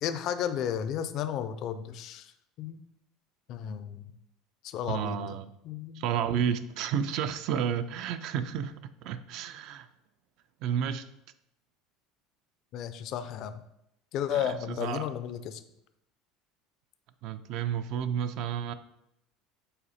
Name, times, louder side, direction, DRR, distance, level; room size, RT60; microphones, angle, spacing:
voice 1, 0.0-2.3 2.6-2.8 3.5-4.1 4.6-5.3 5.6-6.0 12.7-13.6 14.1-15.6, left 9 dB, 45° left, 11 dB, 0.4 m, -33 dB
voice 2, 4.9-5.4 6.0-9.9 10.6-11.1 14.3-15.1 17.2-18.7, right 8 dB, 55° right, 12 dB, 0.4 m, -31 dB
5.6 x 4.1 x 4.1 m, 0.81 s
cardioid pair, 155°, 0 cm